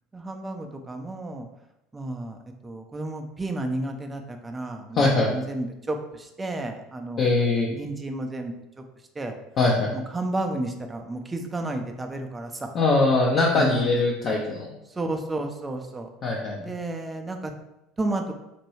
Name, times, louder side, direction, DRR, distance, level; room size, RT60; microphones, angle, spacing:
voice 1, 0.1-1.5 1.9-8.5 9.2-9.3 10.1-12.7 13.5-13.9 14.9-16.1 16.6-17.5 18.0-18.3, right 2 dB, 20° right, 4 dB, 0.5 m, -32 dB
voice 2, 4.9-5.3 7.2-7.7 9.6-9.9 12.7-14.7 16.2-16.6, left 3 dB, 45° left, -3 dB, 0.6 m, -21 dB
4.2 x 2.2 x 3.1 m, 0.90 s
hypercardioid pair, 75°, 0 cm